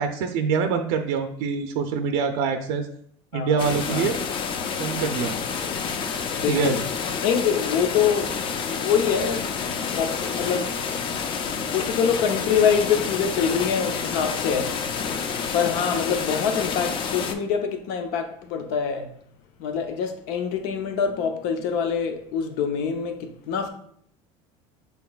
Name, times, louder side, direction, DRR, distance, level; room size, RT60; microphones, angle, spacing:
voice 1, 0.0-2.9 3.3-4.2 4.8-5.3 6.5-6.7, right 6 dB, 85° right, 0.5 m, -25 dB
voice 2, 3.3-4.1 6.4-6.8 7.2-9.6 9.9-10.8 11.7-14.8 15.5-19.1 19.6-23.7, left 7 dB, 75° left, 0.7 m, -25 dB
sound 1, 3.6-17.3, left 6 dB, 40° left, 0.5 m, -29 dB
5.8 x 3.7 x 2.3 m
cardioid pair, 125°, 13 cm